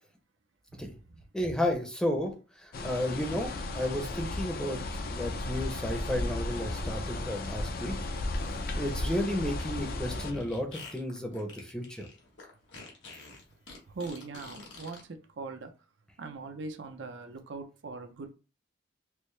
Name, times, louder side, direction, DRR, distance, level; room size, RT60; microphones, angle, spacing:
voice 1, 0.7-1.2 13.9-15.7 16.2-18.3, right 3 dB, 70° right, 0.5 m, -41 dB
voice 2, 1.3-2.3 2.6-4.8 5.1-8.0 8.8-12.1, left 1 dB, 5° left, 0.6 m, -32 dB
sound 1, 2.7-10.3, left 2 dB, 55° left, 0.5 m, -34 dB
Fart, 9.5-15.0, left 2 dB, 80° left, 1.2 m, -47 dB
4.5 x 2.0 x 3.2 m
head